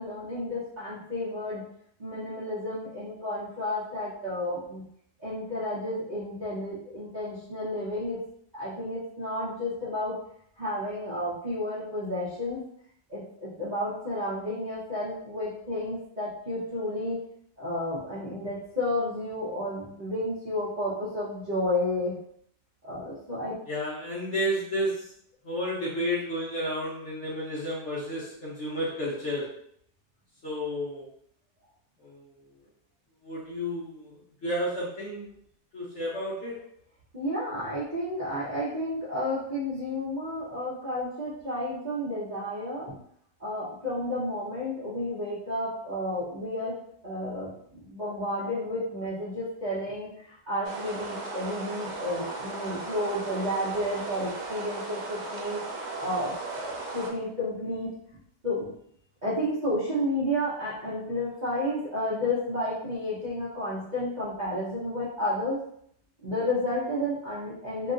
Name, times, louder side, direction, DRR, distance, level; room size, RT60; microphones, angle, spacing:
voice 1, 0.0-1.6 2.0-4.8 5.2-8.2 8.5-10.1 10.6-12.6 13.1-17.2 17.6-22.1 22.8-23.6 37.1-43.0 43.4-46.7 47.0-55.6 56.0-57.9 58.4-58.7 59.2-65.6 66.2-67.9, left 1 dB, 45° right, -11 dB, 0.6 m, -31 dB
voice 2, 23.7-25.0 25.4-29.4 30.4-31.1 32.0-32.4 33.2-35.3 35.7-36.6, equal, 55° left, -6 dB, 0.8 m, -31 dB
sound 1, 50.6-57.1, right 3 dB, 85° right, 1.2 m, -36 dB
2.9 x 2.7 x 2.4 m, 0.68 s
omnidirectional pair, 1.8 m